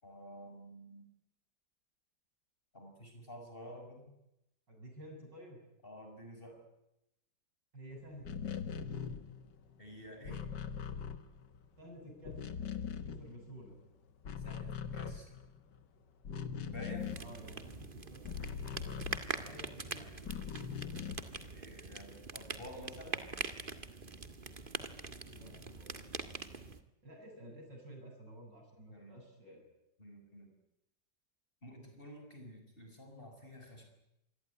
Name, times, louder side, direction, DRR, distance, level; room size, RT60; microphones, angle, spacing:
voice 1, 0.0-1.1 2.7-4.1 5.8-6.6 9.8-10.4 14.4-15.3 16.6-17.1 21.4-23.3 28.9-29.2 30.0-30.5 31.6-33.8, equal, 30° left, 4 dB, 6.5 m, -50 dB
voice 2, 4.7-5.6 7.7-8.6 11.8-12.4 13.0-13.8 17.2-18.4 19.1-20.1 25.3-26.0 27.0-29.7, right 1 dB, 80° right, 2 dB, 8.7 m, -52 dB
sound 1, 8.1-11.8 12.1-13.8 14.1-19.7 20.2-21.4, left 7 dB, 75° left, 2.1 m, -42 dB
sound 2, 17.0-26.8, right 3 dB, 30° right, 1.8 m, -43 dB
27.0 x 21.5 x 9.8 m, 0.87 s
omnidirectional pair, 1.9 m